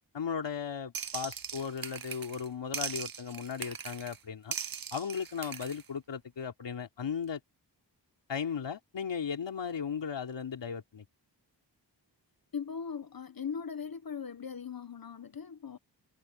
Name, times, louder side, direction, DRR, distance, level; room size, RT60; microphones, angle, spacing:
voice 1, 0.1-4.6 4.9-7.4 8.3-11.0, left 7 dB, 85° left, 3.2 m, -36 dB
sound 1, 0.9-2.5 2.7-4.2 4.5-5.8, right 7 dB, 55° right, 0.9 m, -40 dB
voice 2, 12.5-15.8, left 6 dB, 55° left, 1.2 m, -39 dB
wide cardioid pair, 75°, 43 cm